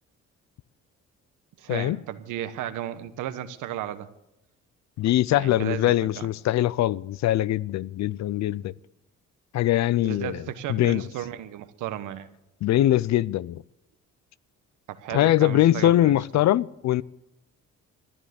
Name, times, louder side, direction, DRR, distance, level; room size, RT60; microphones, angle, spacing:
voice 1, 1.6-4.1 5.3-6.3 10.0-12.3 14.9-16.2, right 11 dB, 90° right, 1.1 m, -34 dB
voice 2, 5.0-8.7 9.5-10.4 10.7-11.0 12.6-13.6 15.1-17.0, left 14 dB, 65° left, 0.5 m, -22 dB
13.5 x 10.0 x 7.9 m
cardioid pair, 90°, 30 cm